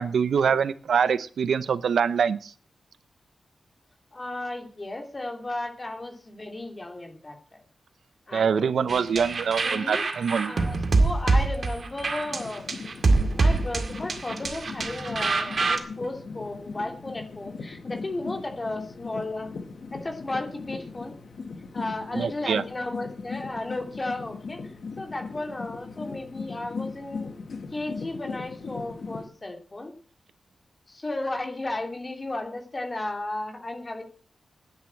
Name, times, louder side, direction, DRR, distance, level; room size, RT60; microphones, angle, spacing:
voice 1, 0.0-2.5 8.3-10.5 22.2-22.6, right 7 dB, 80° right, 16 dB, 0.7 m, -24 dB
voice 2, 4.1-7.6 8.3-9.2 9.6-10.0 10.5-12.6 13.1-19.5 19.9-21.1 21.7-27.3 27.7-29.9 30.9-34.0, left 2 dB, 25° left, 4 dB, 3.0 m, -34 dB
sound 1, 8.9-15.8, right 3 dB, 45° right, 2.0 m, -25 dB
sound 2, 12.1-29.3, left 4 dB, 60° left, 2.0 m, -39 dB
10.5 x 10.5 x 7.7 m, 0.42 s
wide cardioid pair, 150°, 0 cm